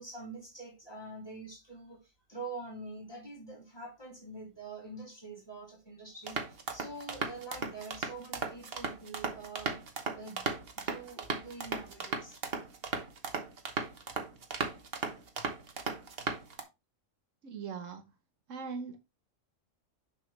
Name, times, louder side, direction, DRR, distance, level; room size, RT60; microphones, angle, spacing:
voice 1, 0.0-9.8 10.1-10.5 10.7-12.4, right 3 dB, 20° left, 3.0 m, -45 dB
sound 1, 6.3-16.6, right 4 dB, 50° right, 1.3 m, -37 dB
voice 2, 17.4-18.1 18.5-19.0, right 5 dB, 70° right, 1.3 m, -40 dB
6.4 x 6.2 x 3.2 m
omnidirectional pair, 1.3 m